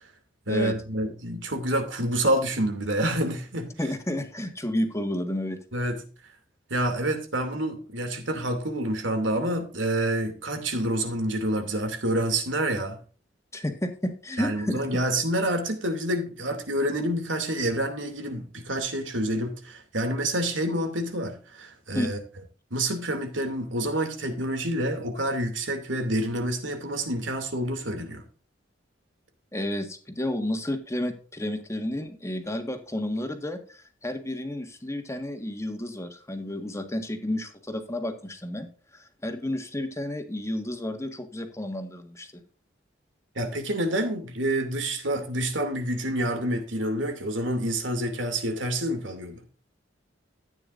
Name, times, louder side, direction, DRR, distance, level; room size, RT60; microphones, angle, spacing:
voice 1, 0.5-3.8 5.7-6.0 6.7-13.0 14.4-22.2 22.7-28.2 43.4-49.4, right 1 dB, 90° right, 2.7 m, -28 dB
voice 2, 3.8-5.6 13.5-14.9 21.9-22.1 29.5-38.7 38.9-42.4, left 1 dB, 15° left, 1.7 m, -31 dB
14.0 x 9.3 x 2.6 m
head